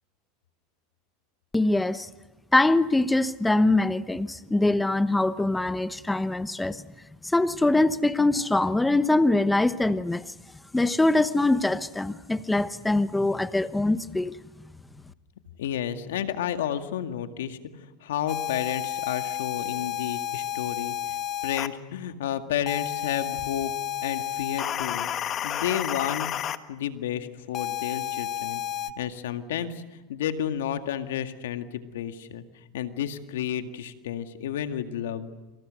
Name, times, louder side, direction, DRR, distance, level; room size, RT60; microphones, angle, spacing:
voice 1, 1.5-2.1 2.5-6.8 7.2-10.3 10.7-14.4, left 2 dB, 10° left, 1.0 m, -23 dB
voice 2, 15.6-23.7 24.0-25.1 25.4-26.3 26.7-28.6 29.0-32.4 32.7-35.3, left 10 dB, 80° left, 2.1 m, -31 dB
sound 1, 18.3-21.7 22.7-26.6 27.5-28.9, left 10 dB, 40° left, 1.5 m, -31 dB
28.0 x 27.5 x 6.5 m
hypercardioid pair, 100°, 0 cm